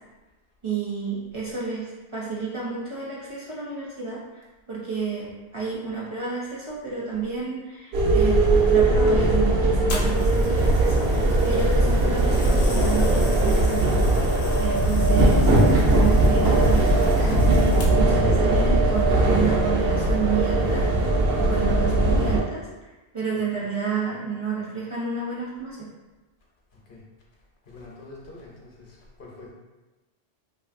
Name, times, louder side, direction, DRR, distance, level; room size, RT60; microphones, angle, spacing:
voice 1, 0.6-14.0 14.6-17.4 17.9-22.7 23.1-25.8, right 5 dB, 40° right, -6 dB, 0.5 m, -31 dB
sound 1, 7.9-22.4, right 2 dB, 85° right, 0.9 m, -19 dB
sound 2, 9.9-18.2 19.0-19.2, left 4 dB, 90° left, 0.8 m, -40 dB
voice 2, 27.7-29.5, left 2 dB, 60° left, -3 dB, 0.8 m, -45 dB
3.0 x 2.5 x 2.5 m, 1.1 s
omnidirectional pair, 1.0 m